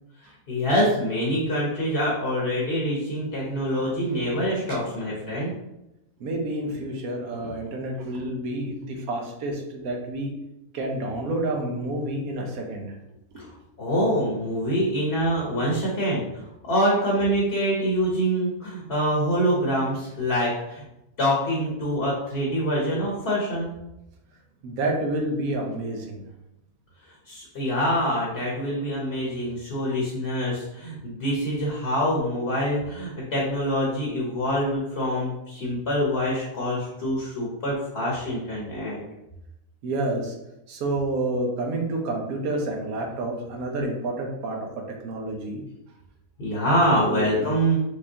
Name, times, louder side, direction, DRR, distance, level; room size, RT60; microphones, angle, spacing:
voice 1, 0.5-5.5 13.8-20.8 21.2-23.7 27.3-39.0 46.4-47.8, equal, 45° left, -4 dB, 1.2 m, -25 dB
voice 2, 6.2-10.4 10.7-12.9 24.6-26.2 39.8-40.3 40.7-45.6 47.1-47.5, right 2 dB, 65° right, 1 dB, 1.3 m, -29 dB
5.2 x 3.5 x 2.8 m, 0.89 s
omnidirectional pair, 1.7 m